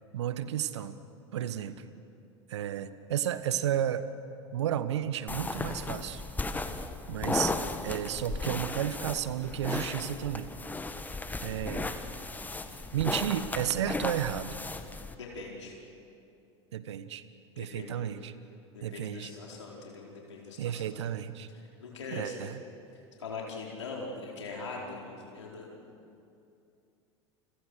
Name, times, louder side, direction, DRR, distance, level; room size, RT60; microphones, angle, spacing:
voice 1, 0.1-1.0 1.3-1.8 2.5-4.1 4.5-6.2 7.1-7.5 7.8-10.5 11.4-11.9 12.9-14.6 16.7-17.2 17.6-18.3 18.8-19.3 20.6-21.5 22.1-22.6, right 10 dB, 70° right, 13 dB, 1.3 m, -32 dB
sound 1, 5.3-15.2, left 3 dB, 10° left, 1.6 m, -35 dB
voice 2, 15.1-15.7 17.5-18.1 18.7-20.8 21.5-22.4 22.9-25.8, left 3 dB, 75° left, -2 dB, 4.7 m, -42 dB
30.0 x 26.0 x 6.5 m, 2.7 s
figure-of-eight pair, 80°, 15 cm